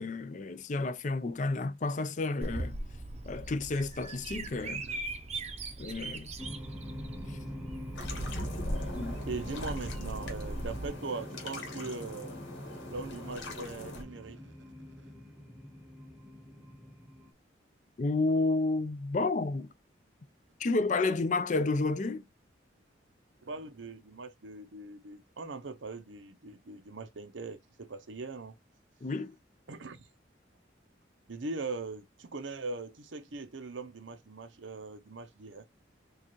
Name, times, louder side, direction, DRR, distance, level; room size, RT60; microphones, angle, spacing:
voice 1, 0.0-2.8 3.3-4.8 5.8-6.3 7.3-7.4 8.9-9.2 18.0-19.7 20.6-22.2 29.0-29.3, left 3 dB, 40° left, 0.4 m, -31 dB
Bird vocalization bird call bird song, 2.4-10.9, right 2 dB, 35° right, 0.6 m, -40 dB
sound 1, 6.4-17.3, left 1 dB, 10° right, 0.8 m, -45 dB
sound 2, 7.9-14.0, left 1 dB, 90° left, 1.5 m, -41 dB
voice 2, 9.1-12.4 12.9-14.5 15.0-15.1 23.4-28.6 29.7-30.1 31.3-35.6, right 3 dB, 85° right, 0.7 m, -41 dB
4.7 x 2.4 x 3.0 m
head